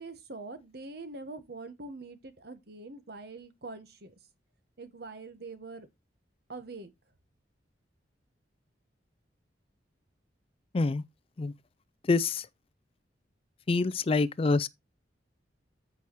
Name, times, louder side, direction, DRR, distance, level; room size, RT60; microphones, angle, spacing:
voice 1, 0.0-4.1 4.8-5.9 6.5-6.9, right 3 dB, 55° right, 1.2 m, -44 dB
voice 2, 12.1-12.5 13.7-14.7, left 3 dB, 30° left, 0.4 m, -26 dB
14.0 x 4.7 x 3.0 m
head